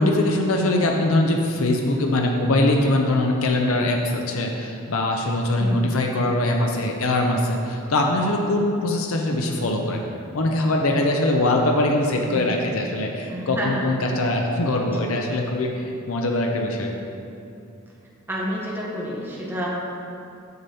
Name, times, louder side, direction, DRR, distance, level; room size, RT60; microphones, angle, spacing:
voice 1, 0.0-10.0 10.3-16.9, left 1 dB, 75° left, 1 dB, 0.7 m, -22 dB
voice 2, 5.6-5.9 12.3-12.6 13.3-14.0 15.0-15.1 18.3-19.7, equal, 10° right, -4 dB, 0.9 m, -29 dB
6.9 x 6.7 x 4.2 m, 2.6 s
head